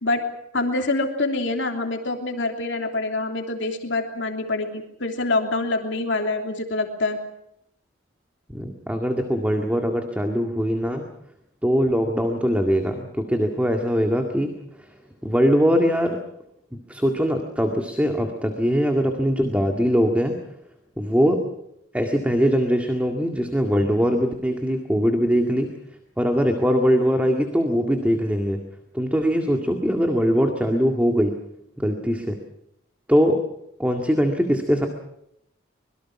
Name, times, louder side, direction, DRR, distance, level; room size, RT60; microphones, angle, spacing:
voice 1, 0.5-7.2, left 2 dB, 65° left, 3 dB, 3.1 m, -25 dB
voice 2, 8.5-11.1 11.6-14.5 14.8-14.9 15.2-16.2 16.7-20.4 21.0-21.4 21.9-25.7 26.2-28.6 28.9-31.4 31.8-32.4 33.1-33.4 33.8-34.9, equal, 5° right, 3 dB, 2.0 m, -21 dB
25.5 x 22.5 x 6.0 m, 0.79 s
head